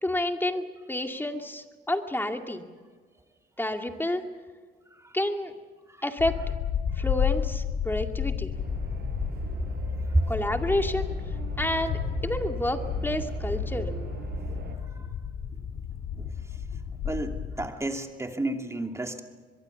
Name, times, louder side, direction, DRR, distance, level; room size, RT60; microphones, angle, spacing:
voice 1, 0.0-2.6 3.6-4.3 5.1-5.5 6.0-6.4 7.0-8.6 10.3-11.1 11.6-13.9, left 1 dB, 10° left, 4 dB, 2.2 m, -29 dB
sound 1, 6.2-17.7, left 8 dB, 80° left, 2.5 m, -32 dB
sound 2, 8.5-14.8, right 5 dB, 50° right, 5.5 m, -37 dB
voice 2, 9.9-10.3 14.9-15.2 15.7-15.8 16.1-16.7 17.0-19.2, right 2 dB, 15° right, 4 dB, 2.7 m, -32 dB
23.0 x 23.0 x 7.1 m, 1.5 s
cardioid pair, 90°, 20 cm